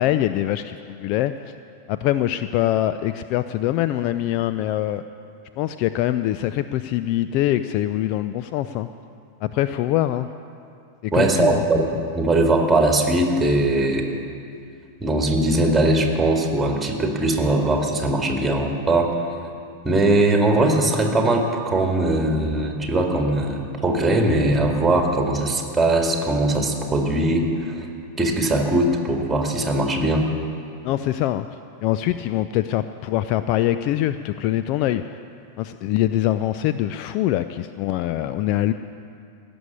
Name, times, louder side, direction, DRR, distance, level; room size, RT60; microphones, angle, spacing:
voice 1, 0.0-1.5 1.9-5.0 5.6-8.9 9.4-10.3 11.0-11.6 30.8-31.5 31.8-35.2 35.6-38.7, left 13 dB, 45° left, 11 dB, 0.4 m, -23 dB
voice 2, 11.1-14.1 15.0-19.3 19.8-27.9 28.2-30.2, right 2 dB, 10° right, 2 dB, 2.1 m, -20 dB
17.0 x 7.0 x 9.9 m, 2.5 s
figure-of-eight pair, 90°, 0 cm